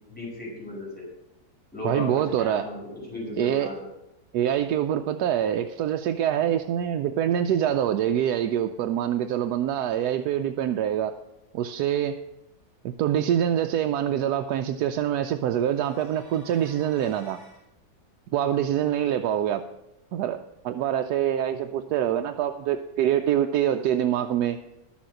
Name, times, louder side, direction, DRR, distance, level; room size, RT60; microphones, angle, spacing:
voice 1, 0.1-1.0 1.7-3.9, left 2 dB, 5° left, -5 dB, 5.2 m, -35 dB
voice 2, 1.8-2.7 3.4-3.7 4.3-11.1 11.5-12.2 12.8-17.4 18.3-19.6 20.1-24.6, right 10 dB, 85° right, 6 dB, 1.2 m, -25 dB
sound 1, 15.5-17.6, equal, 30° left, 2.9 m, -52 dB
12.0 x 7.2 x 6.4 m, 0.90 s
omnidirectional pair, 1.7 m